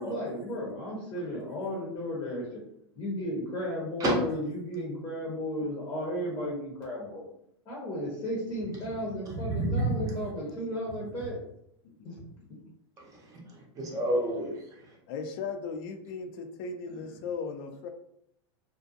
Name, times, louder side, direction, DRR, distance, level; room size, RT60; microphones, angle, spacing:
voice 1, 0.0-2.5 3.0-7.2 7.7-11.4 12.0-12.2 12.5-12.6, equal, 25° left, -4 dB, 0.8 m, -34 dB
voice 2, 9.3-10.2 13.3-14.6, right 1 dB, 20° right, -1 dB, 0.7 m, -29 dB
voice 3, 10.2-10.6 11.8-12.1 12.4-12.5 13.9-14.1 15.1-17.9, left 5 dB, 50° left, 7 dB, 0.4 m, -38 dB
2.5 x 2.3 x 2.6 m, 0.75 s
supercardioid pair, 140°, 15 cm